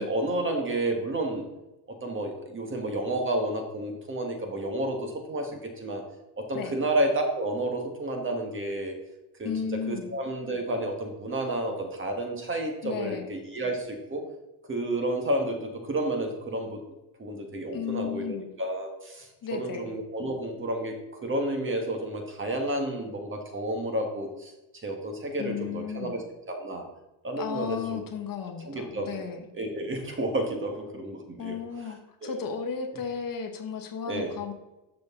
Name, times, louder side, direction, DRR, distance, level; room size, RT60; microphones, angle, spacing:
voice 1, 0.0-1.5 1.9-5.5 5.8-6.0 6.4-8.9 9.4-9.5 9.9-14.2 14.7-16.8 17.2-24.5 24.8-26.2 26.5-26.8 27.2-28.0 28.7-29.1 29.5-31.9 32.2-32.4 34.1-34.3, right 1 dB, 25° right, 3 dB, 1.3 m, -31 dB
voice 2, 9.4-10.1 12.8-13.3 17.7-18.5 19.4-19.9 25.4-26.1 27.3-29.4 31.4-34.5, left 7 dB, 45° left, 5 dB, 1.0 m, -34 dB
12.5 x 6.5 x 3.7 m, 0.99 s
cardioid pair, 180°, 48 cm